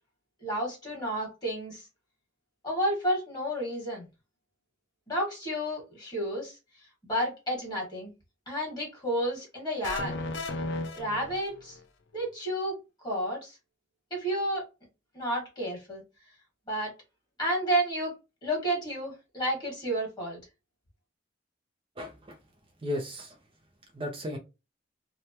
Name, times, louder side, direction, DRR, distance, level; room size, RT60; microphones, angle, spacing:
voice 1, 0.4-1.8 2.6-4.1 5.1-6.5 7.1-8.1 8.5-10.2 10.9-11.8 12.1-12.8 13.0-13.5 14.1-14.6 15.1-16.0 16.7-16.9 17.4-18.1 18.4-20.4, equal, 25° left, 1.8 m, -31 dB
sound 1, 9.8-11.8, left 2 dB, 70° left, 0.5 m, -35 dB
voice 2, 22.0-22.4 22.8-23.4 23.9-24.4, left 1 dB, 30° right, 0.5 m, -35 dB
3.2 x 2.2 x 2.8 m
head